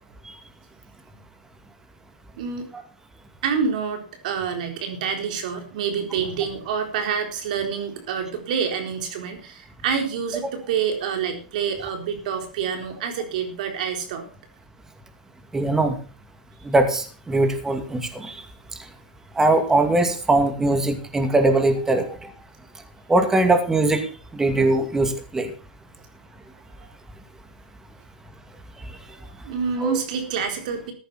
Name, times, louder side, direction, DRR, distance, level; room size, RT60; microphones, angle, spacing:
voice 1, 3.4-14.2 26.8-26.9 29.4-30.9, right 6 dB, 65° right, 5 dB, 4.0 m, -27 dB
voice 2, 15.5-16.0 16.6-18.3 19.4-22.3 23.1-24.1 24.3-25.5 29.8-30.0, right 2 dB, 10° right, 7 dB, 2.4 m, -21 dB
14.5 x 10.5 x 4.3 m, 0.38 s
hypercardioid pair, 120°, 5 cm